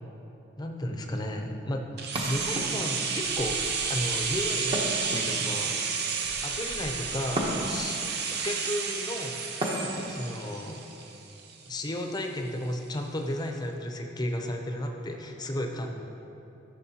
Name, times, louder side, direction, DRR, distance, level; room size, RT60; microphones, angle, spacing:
voice 1, 0.6-1.9 2.2-5.8 6.4-8.0 8.3-9.4 10.1-10.9 11.7-15.9, left 1 dB, 20° left, 3 dB, 0.6 m, -33 dB
sound 1, 2.0-11.8 12.1-12.2, right 5 dB, 55° right, 0.6 m, -31 dB
sound 2, 2.1-3.1 4.7-5.7 7.4-8.0 9.6-10.2, right 1 dB, 30° right, 0.9 m, -33 dB
12.5 x 6.2 x 2.9 m, 3.0 s
head